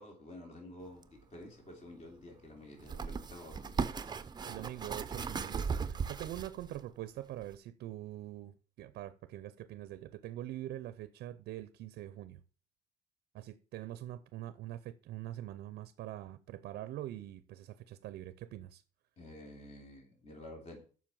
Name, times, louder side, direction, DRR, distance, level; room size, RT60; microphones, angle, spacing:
voice 1, 0.0-3.8 19.2-20.8, left 1 dB, 40° left, 3.1 m, -50 dB
sound 1, 1.0-1.1 2.8-6.8 7.4-7.5, right 5 dB, 25° right, 0.6 m, -37 dB
voice 2, 4.4-12.4 13.3-18.8, right 13 dB, 75° right, 0.6 m, -44 dB
7.5 x 5.7 x 7.0 m
cardioid pair, 110°, 17 cm